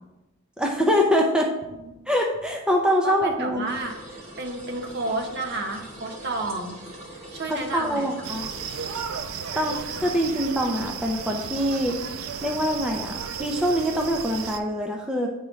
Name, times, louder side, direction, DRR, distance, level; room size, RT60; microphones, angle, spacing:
voice 1, 0.6-1.5 2.1-3.7 7.5-8.5 9.5-12.0 12.4-15.3, equal, 5° right, 0 dB, 0.5 m, -24 dB
voice 2, 3.0-8.3 9.4-10.1, right 2 dB, 55° right, 3 dB, 0.9 m, -32 dB
sound 1, 3.7-9.0, right 1 dB, 30° right, 1.4 m, -43 dB
sound 2, 8.2-14.6, right 7 dB, 85° right, 0.5 m, -34 dB
9.9 x 3.7 x 3.1 m, 0.99 s
head